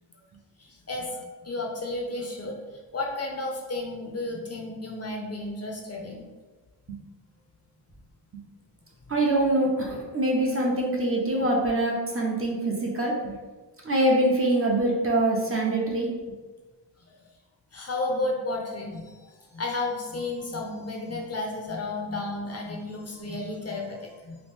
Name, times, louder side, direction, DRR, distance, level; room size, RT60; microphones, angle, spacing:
voice 1, 0.6-2.6 2.9-6.2 17.7-24.4, left 2 dB, 35° left, 0 dB, 0.6 m, -32 dB
voice 2, 9.1-13.3 13.8-16.1, right 1 dB, 35° right, -2 dB, 0.6 m, -24 dB
2.9 x 2.5 x 3.4 m, 1.3 s
wide cardioid pair, 115°, 42 cm